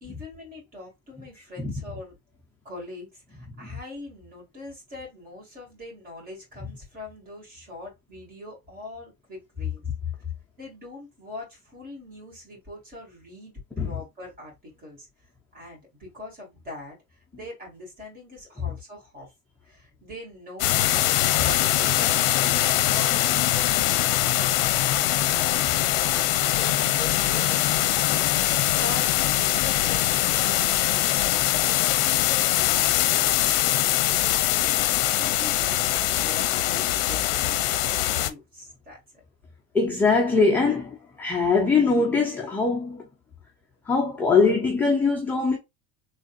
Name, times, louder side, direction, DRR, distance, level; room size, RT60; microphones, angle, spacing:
voice 1, 0.0-2.2 2.6-9.9 10.6-15.1 15.5-19.3 19.6-24.6 25.1-31.3 31.9-39.0, left 2 dB, 30° right, 2.4 m, -43 dB
sound 1, 20.6-38.3, left 14 dB, 70° left, 0.6 m, -22 dB
voice 2, 39.7-43.1 43.9-45.6, left 4 dB, 5° left, 0.3 m, -22 dB
4.0 x 3.2 x 2.5 m
cardioid pair, 170°, 30 cm